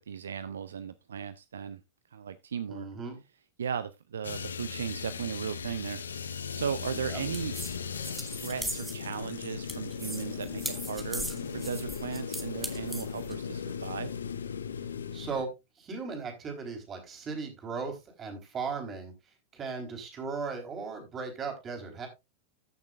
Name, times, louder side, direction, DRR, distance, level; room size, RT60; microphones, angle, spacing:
voice 1, 0.1-1.8 2.1-2.9 3.6-7.6 8.4-14.1, right 7 dB, 65° right, 14 dB, 0.5 m, -36 dB
voice 2, 2.7-3.2 7.1-7.2 15.1-15.5 15.8-19.1 19.5-22.1, right 5 dB, 25° right, 3 dB, 3.8 m, -37 dB
sound 1, 4.2-15.4, left 6 dB, 70° left, 0.7 m, -37 dB
sound 2, 7.3-13.3, right 1 dB, 5° right, 1.8 m, -40 dB
14.5 x 6.6 x 2.4 m, 0.23 s
figure-of-eight pair, 90°, 0 cm